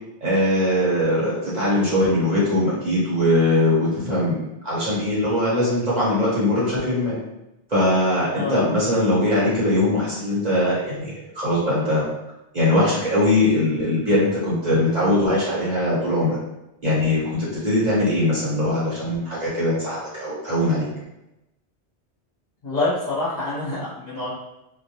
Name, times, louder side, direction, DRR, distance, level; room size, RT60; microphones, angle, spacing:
voice 1, 0.2-7.2 7.7-12.1 12.5-16.4 16.8-20.9, left 1 dB, 40° right, -9 dB, 1.0 m, -21 dB
voice 2, 8.3-8.6 22.6-24.3, left 2 dB, 40° left, -9 dB, 0.9 m, -26 dB
2.2 x 2.2 x 2.8 m, 0.92 s
omnidirectional pair, 1.1 m